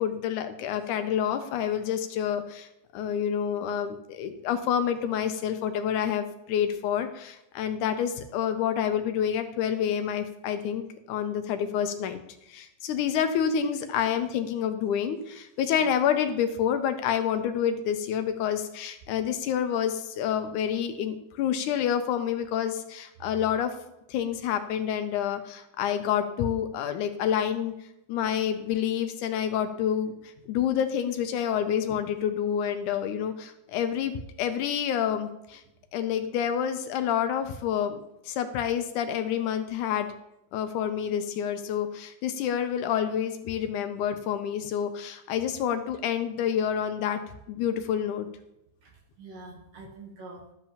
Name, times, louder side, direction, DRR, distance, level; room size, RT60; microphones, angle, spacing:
voice 1, 0.0-12.2 12.5-23.7 24.1-27.7 28.1-34.1 34.4-35.6 35.9-40.1 40.5-47.2 47.5-48.3, left 9 dB, 80° left, 8 dB, 2.1 m, -28 dB
voice 2, 48.8-50.5, right 3 dB, 60° right, 1 dB, 2.0 m, -46 dB
13.0 x 7.3 x 2.9 m, 0.88 s
omnidirectional pair, 3.7 m